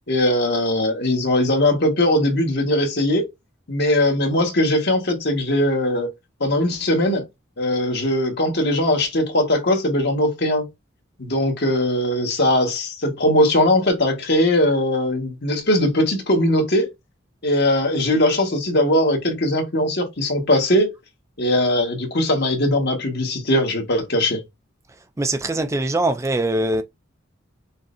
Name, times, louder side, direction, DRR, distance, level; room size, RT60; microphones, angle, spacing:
voice 1, 0.1-3.3 3.7-6.1 6.4-7.2 7.6-10.7 11.2-16.9 17.4-20.9 21.4-24.4, left 1 dB, 55° left, 1.6 m, -20 dB
voice 2, 25.2-26.8, right 2 dB, 15° right, 0.4 m, -22 dB
6.3 x 3.1 x 2.7 m
head